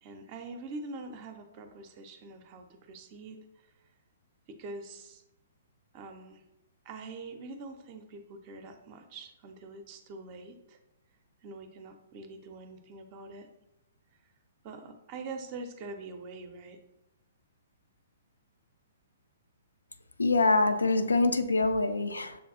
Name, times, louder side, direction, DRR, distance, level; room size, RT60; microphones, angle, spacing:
voice 1, 0.0-3.4 4.5-5.2 5.9-6.4 6.8-10.8 11.4-13.5 14.6-16.8, right 3 dB, 35° right, 7 dB, 0.5 m, -44 dB
voice 2, 20.2-22.4, left 3 dB, 75° left, 8 dB, 0.3 m, -25 dB
6.8 x 2.3 x 2.6 m, 0.92 s
figure-of-eight pair, 120°, 0 cm